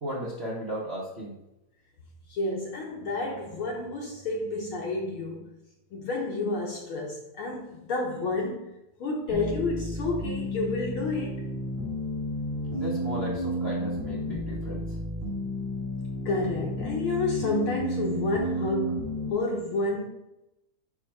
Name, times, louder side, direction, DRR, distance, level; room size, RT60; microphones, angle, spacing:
voice 1, 0.0-1.4 12.7-15.0, equal, 40° right, -5 dB, 0.9 m, -35 dB
voice 2, 2.3-5.5 5.9-8.7 9.0-11.4 16.3-20.0, left 2 dB, 60° left, -1 dB, 1.6 m, -30 dB
sound 1, 9.3-19.3, equal, 85° right, 3.4 m, -32 dB
10.0 x 3.4 x 4.7 m, 0.90 s
omnidirectional pair, 3.4 m